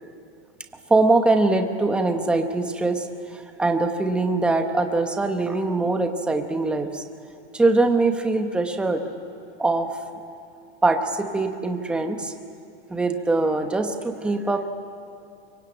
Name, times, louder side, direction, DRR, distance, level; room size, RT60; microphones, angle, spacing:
voice 1, 0.9-7.0 7.5-9.0 9.6-10.0 10.8-12.3 12.9-14.7, right 2 dB, 5° right, 5 dB, 0.9 m, -22 dB
26.0 x 23.5 x 8.7 m, 2.6 s
supercardioid pair, 165°, 35 cm